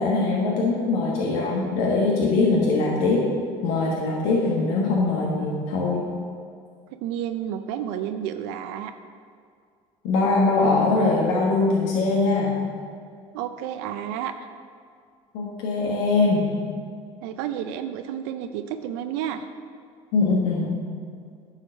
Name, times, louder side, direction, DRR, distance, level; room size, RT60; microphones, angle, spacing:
voice 1, 0.0-3.3 3.6-6.1 10.0-12.5 15.3-16.5 20.1-20.7, left 3 dB, 80° left, -4 dB, 1.4 m, -22 dB
voice 2, 7.0-8.9 13.3-14.5 17.2-19.5, right 10 dB, 80° right, 8 dB, 0.5 m, -31 dB
9.8 x 4.9 x 6.3 m, 2.2 s
supercardioid pair, 80°, 14 cm